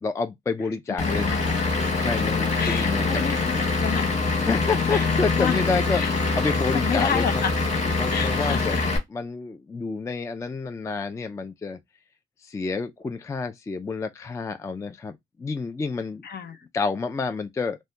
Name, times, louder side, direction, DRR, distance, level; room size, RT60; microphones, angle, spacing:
voice 1, 0.0-1.4 2.0-3.2 4.4-7.4 8.0-11.8 12.4-16.2 16.7-17.8, left 4 dB, 15° left, 0.3 m, -29 dB
voice 2, 1.0-1.8 2.6-3.4 3.8-4.1 4.9-5.1 5.4-5.6 5.9-6.1 6.7-7.5 8.1-8.8 16.2-16.6, left 7 dB, 55° left, 0.6 m, -30 dB
Vehicle / Engine, 1.0-9.0, left 3 dB, 35° left, 1.1 m, -24 dB
2.7 x 2.2 x 3.3 m
cardioid pair, 90°, 20 cm